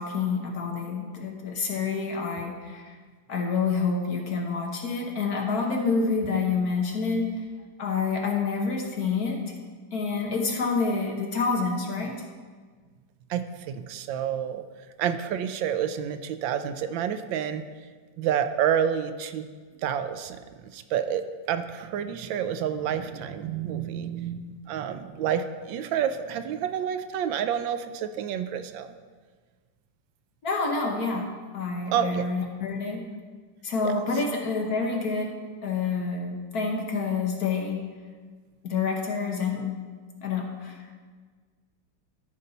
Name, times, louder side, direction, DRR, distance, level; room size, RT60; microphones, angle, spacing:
voice 1, 0.0-2.9 3.3-7.3 7.8-9.5 9.9-12.2 30.4-33.0 33.6-35.3 35.6-37.8 38.6-39.7 40.2-40.9, left 4 dB, 55° left, 1 dB, 1.5 m, -28 dB
voice 2, 13.3-14.6 15.0-17.6 18.2-19.4 19.8-20.4 20.7-21.2 21.5-28.9 31.9-32.2, right 9 dB, 80° right, 9 dB, 1.3 m, -29 dB
13.5 x 5.3 x 4.0 m, 1.5 s
omnidirectional pair, 2.1 m